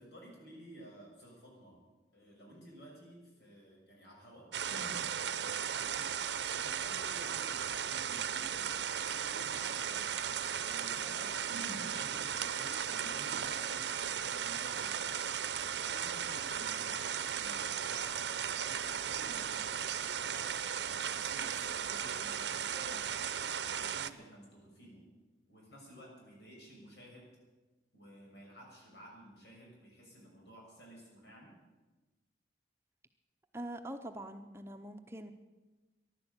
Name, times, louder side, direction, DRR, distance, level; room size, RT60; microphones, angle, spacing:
voice 1, 0.0-1.8 2.1-6.1 6.5-10.1 10.6-13.9 14.2-15.1 15.9-17.0 17.3-19.9 20.2-23.1 23.5-25.0 25.5-27.3 27.9-31.6, right 1 dB, 80° left, -2 dB, 6.4 m, -53 dB
sound 1, 4.5-24.1, right 8 dB, 90° right, 0.7 m, -36 dB
voice 2, 33.5-35.3, right 1 dB, 15° right, 6 dB, 0.7 m, -43 dB
14.5 x 11.5 x 8.1 m, 1.2 s
head